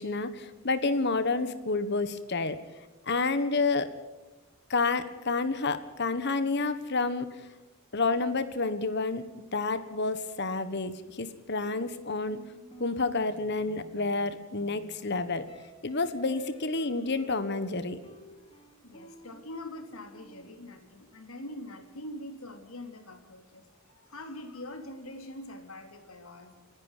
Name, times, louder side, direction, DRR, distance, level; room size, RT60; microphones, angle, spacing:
voice 1, 0.0-2.6 3.0-3.9 4.7-7.3 7.9-9.2 9.5-12.4 12.8-15.4 15.8-18.0, left 3 dB, 55° left, 12 dB, 1.4 m, -29 dB
sound 1, 11.6-20.8, right 1 dB, 25° left, 3.0 m, -52 dB
voice 2, 18.8-26.6, left 1 dB, 85° left, 6 dB, 3.2 m, -44 dB
29.0 x 10.5 x 9.1 m, 1.1 s
head